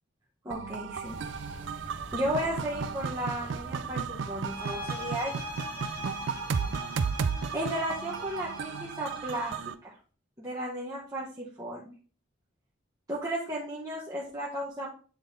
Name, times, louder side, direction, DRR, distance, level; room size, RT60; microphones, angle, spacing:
voice 1, 0.4-1.2 2.1-5.4 7.5-9.5 9.8-9.9 10.4-11.9 13.1-14.9, equal, 20° right, -5 dB, 1.0 m, -34 dB
sound 1, 0.5-9.7, right 6 dB, 65° right, 0.4 m, -34 dB
sound 2, 1.0-8.9, right 1 dB, 35° right, 1.9 m, -49 dB
sound 3, 4.4-9.7, left 3 dB, 25° left, 1.8 m, -42 dB
8.2 x 3.8 x 3.9 m, 0.41 s
head